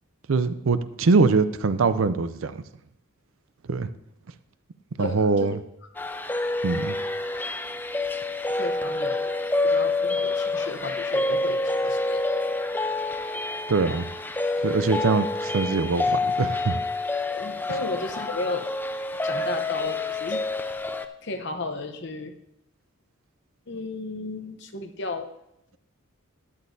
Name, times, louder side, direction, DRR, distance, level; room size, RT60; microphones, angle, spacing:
voice 1, 0.3-2.6 3.7-3.9 5.0-5.6 6.6-7.0 13.7-14.1 14.6-16.8, right 4 dB, 70° right, 13 dB, 0.5 m, -23 dB
voice 2, 5.0-5.6 8.6-12.4 13.0-13.1 17.3-18.7 19.2-20.4 21.2-22.4 23.7-25.3, left 3 dB, 55° left, 7 dB, 0.8 m, -34 dB
sound 1, 6.0-21.0, left 2 dB, 10° left, 0.3 m, -27 dB
12.5 x 9.6 x 2.7 m, 0.81 s
head